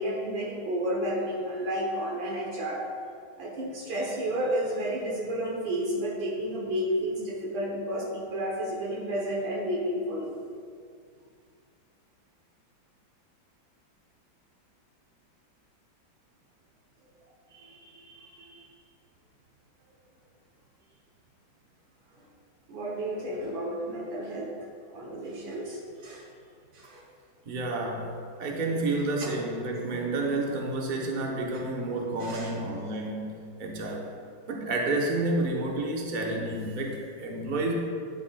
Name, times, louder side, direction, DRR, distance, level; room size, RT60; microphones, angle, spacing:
voice 1, 0.0-2.8 3.4-10.4 17.5-18.7 22.7-24.5 24.9-26.3 26.7-27.0 29.2-29.3 32.2-32.5, equal, 75° right, -3 dB, 1.8 m, -32 dB
voice 2, 27.4-28.1 28.4-33.3 33.6-34.1 34.5-37.7, right 2 dB, 45° right, 0 dB, 0.6 m, -30 dB
11.0 x 6.9 x 2.3 m, 2.2 s
omnidirectional pair, 2.2 m